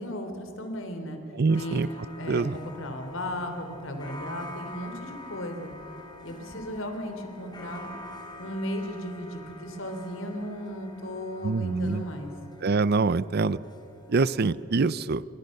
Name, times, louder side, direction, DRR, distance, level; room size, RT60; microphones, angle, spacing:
voice 1, 0.0-1.2 1.6-1.8 2.2-5.7 6.2-7.9 8.4-12.3, equal, 85° left, 6 dB, 3.5 m, -35 dB
voice 2, 1.3-1.9 2.3-2.6 11.4-12.0 12.6-13.6 14.1-15.2, right 4 dB, 55° right, 19 dB, 0.5 m, -25 dB
sound 1, 1.5-14.6, left 1 dB, 20° left, 3.8 m, -46 dB
28.5 x 24.5 x 6.6 m, 2.9 s
head